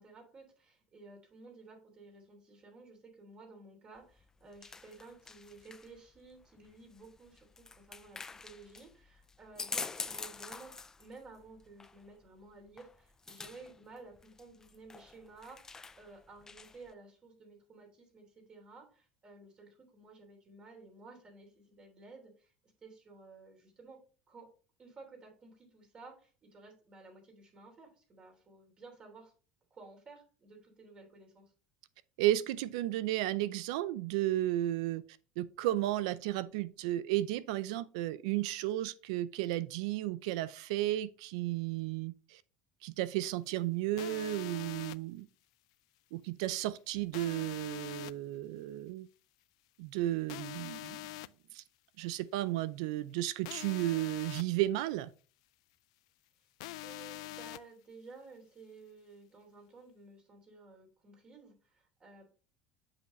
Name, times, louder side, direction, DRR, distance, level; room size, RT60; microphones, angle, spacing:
voice 1, 0.0-24.0 24.3-24.5 24.8-29.3 29.7-31.4 56.8-62.3, right 3 dB, 30° right, 3.0 m, -54 dB
sound 1, 4.0-16.9, left 4 dB, 15° left, 0.4 m, -47 dB
voice 2, 32.2-35.0 35.4-42.4 42.8-45.3 46.1-49.1 49.8-51.0 51.5-51.6 52.0-55.1, right 15 dB, 85° right, 0.5 m, -33 dB
sound 2, 44.0-45.0 47.1-48.1 50.3-51.3 53.4-54.4 56.6-57.6, left 18 dB, 85° left, 0.3 m, -44 dB
7.9 x 5.7 x 3.2 m
supercardioid pair, 120°, 3 cm